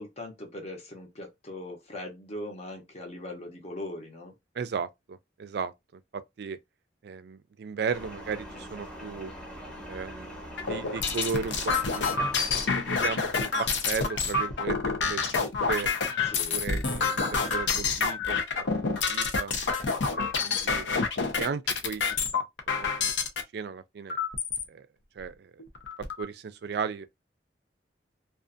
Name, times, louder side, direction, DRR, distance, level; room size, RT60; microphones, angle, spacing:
voice 1, 0.0-4.3 16.2-17.0, left 1 dB, 35° left, 0.8 m, -40 dB
voice 2, 4.5-6.0 6.4-6.6 7.0-9.3 9.8-12.2 12.5-15.9 16.5-19.5 20.0-23.1 23.5-24.2 24.7-24.9 25.2-25.6 26.2-27.1, right 5 dB, 60° right, 0.4 m, -36 dB
sound 1, 7.9-14.7, equal, 5° left, 0.8 m, -44 dB
sound 2, 10.6-23.4 24.1-24.6 25.2-25.3 25.6-26.2, left 4 dB, 75° left, 0.6 m, -28 dB
2.5 x 2.4 x 2.5 m
head